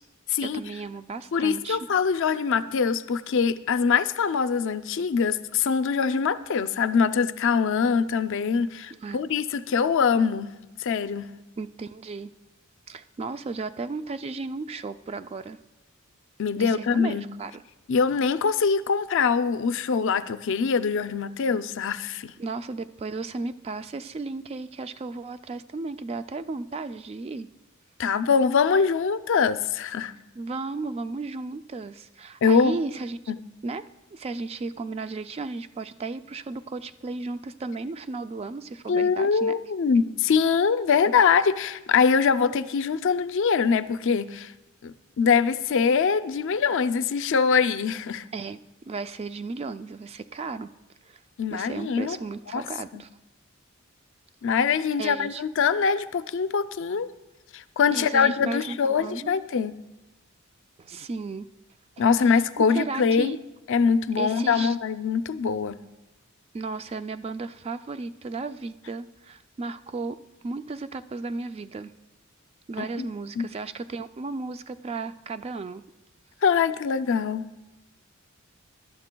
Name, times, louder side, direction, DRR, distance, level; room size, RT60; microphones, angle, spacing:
voice 1, 0.4-1.8 8.9-9.2 11.6-12.3 12.9-15.6 16.6-17.6 22.4-27.5 30.4-33.2 33.6-39.6 48.3-50.7 51.1-51.2 51.5-53.1 55.0-55.4 57.9-59.3 60.8-61.5 62.0-63.4 64.2-64.8 66.5-71.9 72.7-75.8, right 3 dB, 30° right, 12 dB, 0.3 m, -35 dB
voice 2, 1.3-10.5 10.8-11.3 16.4-17.3 17.9-22.3 28.0-30.1 32.4-32.8 33.3-33.4 38.9-44.5 44.8-48.2 51.4-52.2 52.5-52.6 52.9-53.0 54.4-57.1 57.5-59.8 62.0-63.4 63.7-65.8 72.8-73.1 73.4-73.5 76.4-77.5, left 6 dB, 65° left, 12 dB, 0.4 m, -23 dB
20.5 x 12.0 x 2.2 m, 1.0 s
head